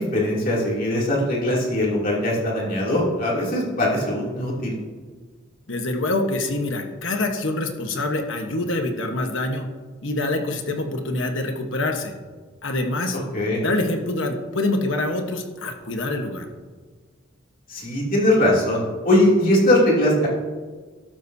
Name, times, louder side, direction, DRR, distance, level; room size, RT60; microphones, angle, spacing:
voice 1, 0.0-4.7 13.1-13.6 17.7-20.3, left 1 dB, 45° left, -4 dB, 2.9 m, -21 dB
voice 2, 5.7-9.7 10.0-12.1 12.6-13.2 13.5-16.5, left 2 dB, 70° left, 4 dB, 1.2 m, -25 dB
12.5 x 12.0 x 2.8 m, 1.4 s
head